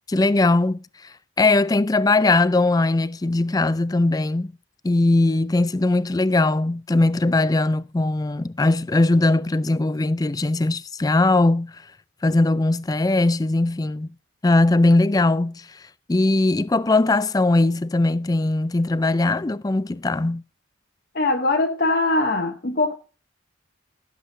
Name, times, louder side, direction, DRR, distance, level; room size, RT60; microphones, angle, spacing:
voice 1, 0.1-4.5 4.8-11.8 12.2-14.1 14.4-15.8 16.1-20.4, left 2 dB, 20° left, 0.4 m, -20 dB
voice 2, 21.1-23.0, left 2 dB, 50° left, 0.9 m, -21 dB
16.5 x 7.6 x 2.7 m
head